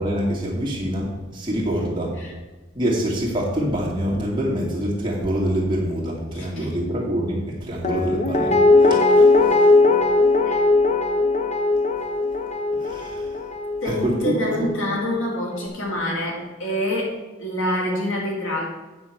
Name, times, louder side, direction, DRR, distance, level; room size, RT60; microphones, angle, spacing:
voice 1, 0.0-2.1 2.7-9.6 12.8-13.2 14.0-14.7, equal, 25° right, -4 dB, 2.3 m, -25 dB
voice 2, 6.3-6.8 10.4-10.6 13.8-18.7, left 1 dB, 75° left, -2 dB, 2.6 m, -26 dB
Guitar, 7.8-14.9 15.2-15.3, left 3 dB, 35° left, 0.8 m, -19 dB
8.8 x 6.2 x 6.0 m, 1.2 s
head